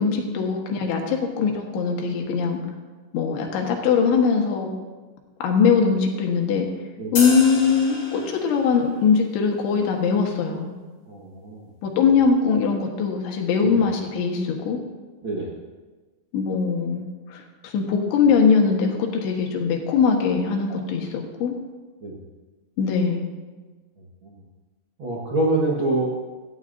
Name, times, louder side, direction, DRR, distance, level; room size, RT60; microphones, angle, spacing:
voice 1, 0.0-2.6 3.1-4.7 5.4-6.7 7.1-10.7 11.8-14.8 16.3-21.6 22.8-23.3, left 5 dB, 90° left, 2 dB, 3.8 m, -21 dB
sound 1, 7.2-8.8, left 3 dB, 40° left, 4.0 m, -31 dB
voice 2, 11.1-11.7 13.6-13.9 15.2-15.5 22.0-22.1 24.0-24.3 25.0-26.1, right 2 dB, 70° right, -5 dB, 1.1 m, -26 dB
17.0 x 13.0 x 2.7 m, 1.3 s
omnidirectional pair, 5.1 m